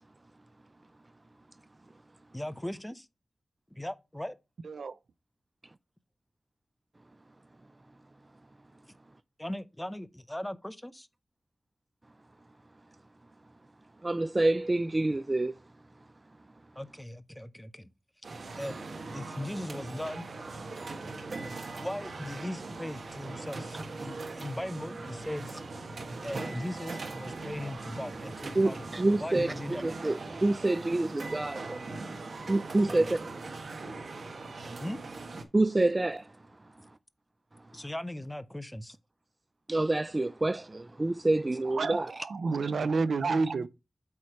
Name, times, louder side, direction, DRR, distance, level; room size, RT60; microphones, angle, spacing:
voice 1, 2.3-3.1 3.7-4.3 9.4-11.1 16.8-17.9 18.6-18.8 19.1-20.3 21.8-25.6 26.2-28.9 29.1-29.8 32.9-33.1 34.8-35.0 37.7-39.0 43.0-43.7, left 1 dB, 10° left, 0.6 m, -38 dB
voice 2, 4.6-5.0 41.7-43.7, right 4 dB, 90° right, 0.5 m, -29 dB
voice 3, 14.0-15.5 23.7-23.8 28.6-31.8 32.5-33.2 35.5-36.3 39.7-42.1, right 2 dB, 30° right, 0.3 m, -27 dB
sound 1, 18.2-35.4, right 3 dB, 70° right, 1.2 m, -40 dB
8.3 x 3.2 x 5.7 m
wide cardioid pair, 85°, 0 cm